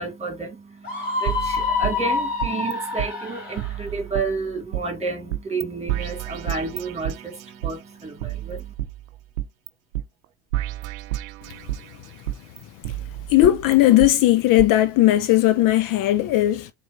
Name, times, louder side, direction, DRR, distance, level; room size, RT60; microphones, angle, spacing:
voice 1, 0.0-8.7, right 3 dB, 15° right, 2.1 m, -31 dB
Screaming, 0.8-3.8, left 4 dB, 30° left, 3.1 m, -26 dB
sound 1, 1.3-2.7 3.0-3.1 3.6-4.8 5.3-5.6 5.9-7.7 8.2-9.7 9.9-10.0 10.5-11.9 12.3-14.1 14.6-14.7, right 14 dB, 90° right, 0.6 m, -30 dB
voice 2, 13.3-16.7, left 15 dB, 55° left, 0.6 m, -17 dB
4.3 x 3.6 x 2.6 m
hypercardioid pair, 80°, 40 cm